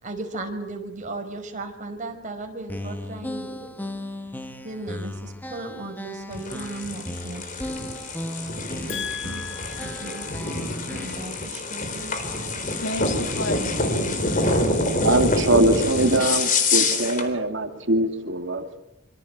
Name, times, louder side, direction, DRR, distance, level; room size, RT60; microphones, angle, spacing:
voice 1, 0.0-3.9 4.6-7.5 8.9-9.4 9.7-10.3 10.9-12.2, right 2 dB, 35° right, 4 dB, 5.1 m, -36 dB
sound 1, 2.7-11.4, left 1 dB, 10° left, 1.5 m, -36 dB
sound 2, 6.3-17.3, left 2 dB, 40° left, 4.1 m, -26 dB
voice 2, 8.9-10.3 12.8-13.9, left 3 dB, 55° left, 8 dB, 2.1 m, -33 dB
voice 3, 14.4-18.8, right 1 dB, 55° right, 6 dB, 2.4 m, -23 dB
26.0 x 25.5 x 8.1 m, 0.83 s
head